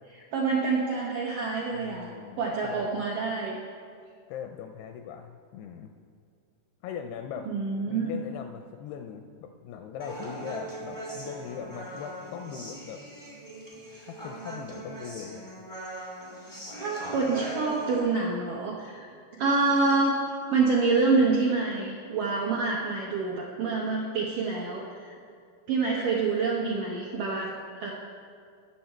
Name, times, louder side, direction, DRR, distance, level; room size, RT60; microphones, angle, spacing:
voice 1, 0.1-2.1 2.4-3.6 7.5-8.2 16.8-19.1 19.4-20.2 20.5-25.1 25.7-27.5 27.8-27.9, right 4 dB, 75° right, -3 dB, 1.9 m, -27 dB
voice 2, 1.7-3.0 4.3-5.9 6.8-7.5 7.9-13.0 14.0-15.5, left 8 dB, 85° left, 5 dB, 2.3 m, -40 dB
Human voice, 10.0-18.0, right 1 dB, 50° right, 0.3 m, -40 dB
20.0 x 6.9 x 4.4 m, 2.2 s
omnidirectional pair, 5.1 m